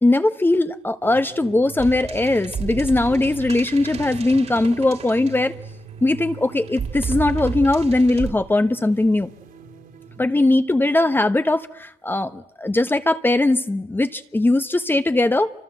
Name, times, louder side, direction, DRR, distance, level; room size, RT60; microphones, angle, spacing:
voice 1, 0.0-5.5 6.0-9.3 10.2-15.5, left 2 dB, 10° left, 1.1 m, -20 dB
sound 1, 1.0-10.2, right 5 dB, 60° right, 3.4 m, -41 dB
sound 2, 1.8-5.9 6.7-8.3, right 6 dB, 40° right, 2.8 m, -32 dB
29.0 x 25.5 x 7.9 m
cardioid pair, 110°, 17 cm